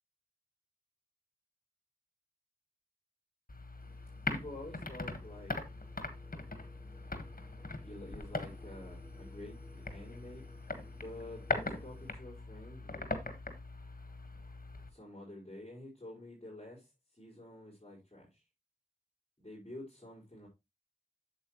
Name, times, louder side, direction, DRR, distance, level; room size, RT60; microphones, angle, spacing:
sound 1, 3.5-14.9, left 2 dB, 80° left, 1.5 m, -41 dB
sound 2, 3.8-12.1, left 1 dB, 15° left, 3.4 m, -60 dB
voice 1, 4.3-5.5 7.8-10.4 10.9-13.1 14.9-18.4 19.4-20.5, left 1 dB, 40° left, 5.0 m, -49 dB
8.5 x 7.7 x 3.1 m
wide cardioid pair, 50°, 15 cm